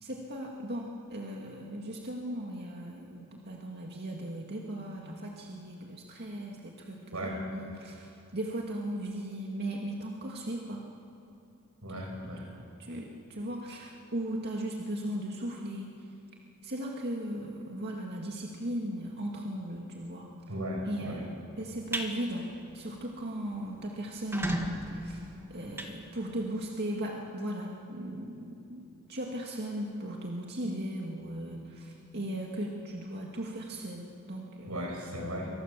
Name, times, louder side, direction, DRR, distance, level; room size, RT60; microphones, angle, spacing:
voice 1, 0.0-10.8 12.6-15.9 16.6-20.3 20.8-22.5 22.7-25.2 25.5-28.8 29.1-34.8, right 1 dB, 50° right, -1 dB, 2.3 m, -37 dB
voice 2, 11.8-12.4 20.5-21.2 34.7-35.5, equal, 85° right, 0 dB, 7.5 m, -36 dB
sound 1, 21.6-22.1 22.5-22.8 23.1-23.2 23.5-23.6 24.1-26.6, right 1 dB, 10° right, 2.1 m, -36 dB
28.0 x 24.5 x 7.6 m, 2.7 s
head